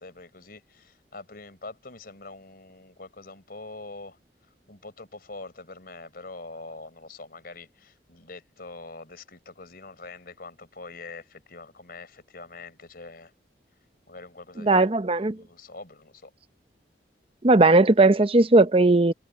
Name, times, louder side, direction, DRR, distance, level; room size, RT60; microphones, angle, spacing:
voice 1, 0.0-4.2 4.7-13.3 14.1-14.9 15.2-16.3, left 3 dB, 55° left, 4.4 m, -44 dB
voice 2, 14.6-15.4 17.4-19.1, right 2 dB, 30° right, 0.8 m, -18 dB
head